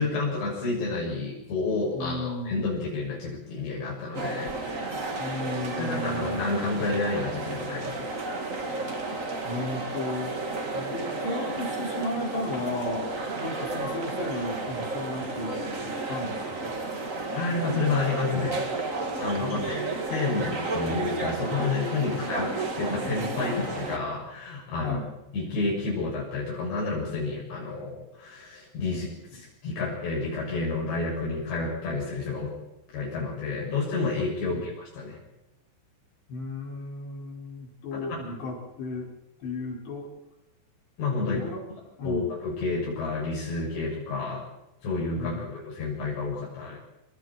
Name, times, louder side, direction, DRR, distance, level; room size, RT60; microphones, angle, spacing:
voice 1, 0.0-5.1 5.8-8.1 17.4-25.0 25.3-32.5 32.9-35.2 37.9-38.2 41.0-41.4 42.0-44.4 44.8-46.8, left 3 dB, 85° left, -5 dB, 9.3 m, -30 dB
voice 2, 1.9-2.5 5.2-6.4 9.4-10.4 10.7-13.1 13.4-16.7 19.4-19.9 22.0-22.2 24.8-25.0 34.5-34.7 36.3-39.1 39.4-40.1 41.2-41.6 42.0-42.3 45.2-45.5, left 2 dB, 70° left, -1 dB, 7.7 m, -34 dB
sound 1, 4.1-24.0, right 3 dB, 30° right, 1.7 m, -32 dB
27.5 x 27.0 x 4.5 m, 0.92 s
omnidirectional pair, 5.0 m